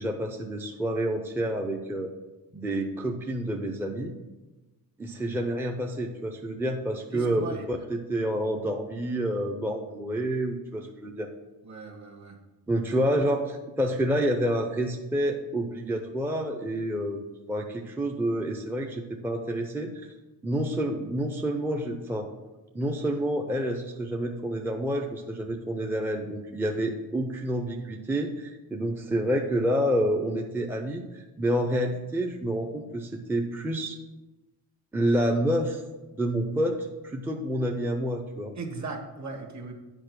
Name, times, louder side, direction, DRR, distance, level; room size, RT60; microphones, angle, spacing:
voice 1, 0.0-2.1 2.5-4.1 5.0-11.3 12.7-13.4 13.8-17.2 17.5-20.1 20.4-22.3 22.7-34.0 34.9-35.8 36.1-38.5, right 1 dB, 5° right, 2 dB, 0.6 m, -28 dB
voice 2, 7.1-7.6 11.6-12.4 13.2-13.3 38.6-39.7, right 3 dB, 45° right, 3 dB, 1.6 m, -38 dB
8.9 x 5.1 x 6.1 m, 1.1 s
cardioid pair, 135°, 39 cm